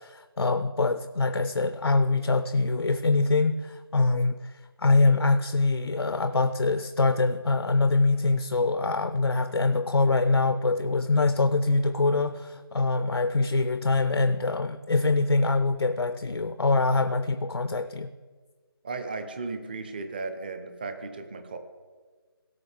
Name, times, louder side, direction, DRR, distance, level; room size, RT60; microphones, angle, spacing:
voice 1, 0.0-4.4 4.8-18.1, left 3 dB, 85° left, 11 dB, 0.6 m, -24 dB
voice 2, 18.8-21.6, right 3 dB, 20° right, 8 dB, 0.7 m, -35 dB
17.0 x 6.5 x 3.6 m, 1.5 s
figure-of-eight pair, 165°, 13 cm